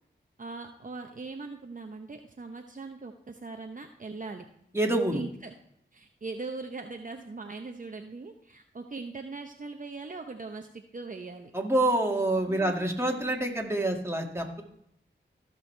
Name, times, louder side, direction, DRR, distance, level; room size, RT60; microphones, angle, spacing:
voice 1, 0.4-4.4 5.1-5.5 5.9-11.5 12.5-12.8, right 3 dB, 45° right, 4 dB, 0.8 m, -40 dB
voice 2, 4.7-5.2 11.5-14.6, right 1 dB, 15° right, 1 dB, 1.9 m, -27 dB
15.5 x 6.3 x 3.3 m, 0.72 s
cardioid pair, 45°, 20 cm